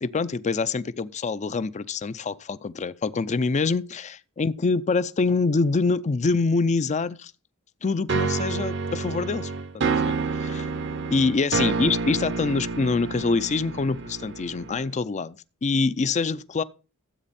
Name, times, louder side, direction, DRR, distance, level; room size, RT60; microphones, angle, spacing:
voice 1, 0.0-7.3 7.8-10.7 11.1-16.6, left 4 dB, 35° left, 0.4 m, -25 dB
sound 1, 8.1-14.9, right 4 dB, 55° right, 0.8 m, -28 dB
13.0 x 8.3 x 4.2 m
head